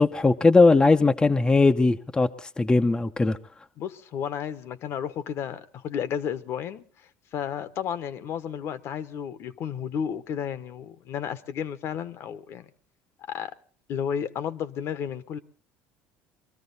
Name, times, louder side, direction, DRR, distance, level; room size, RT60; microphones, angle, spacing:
voice 1, 0.0-2.3 2.6-3.4, left 3 dB, 15° left, 0.7 m, -19 dB
voice 2, 3.8-6.8 7.3-12.7 13.3-13.5 13.9-15.4, left 8 dB, 55° left, 1.0 m, -32 dB
23.5 x 13.5 x 4.0 m
supercardioid pair, 110°, 5 cm